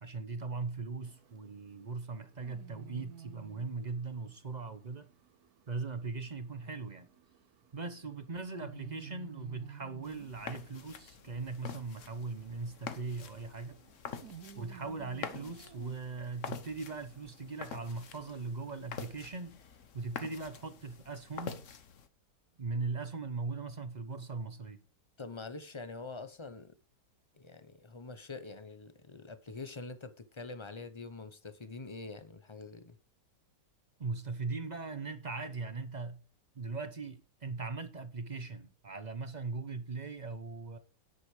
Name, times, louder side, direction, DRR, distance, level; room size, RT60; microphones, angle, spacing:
voice 1, 0.0-5.1 5.7-7.1 7.7-13.8 14.6-19.6 19.9-21.6 22.6-24.8 34.0-36.2 36.5-40.8, right 4 dB, 40° right, 0.6 m, -39 dB
sound 1, 1.0-18.6, right 8 dB, 65° right, 1.3 m, -55 dB
sound 2, 10.0-22.1, left 7 dB, 50° left, 1.2 m, -47 dB
voice 2, 25.2-26.7 27.3-33.0, left 3 dB, 25° left, 0.7 m, -45 dB
10.0 x 8.2 x 4.9 m
omnidirectional pair, 1.8 m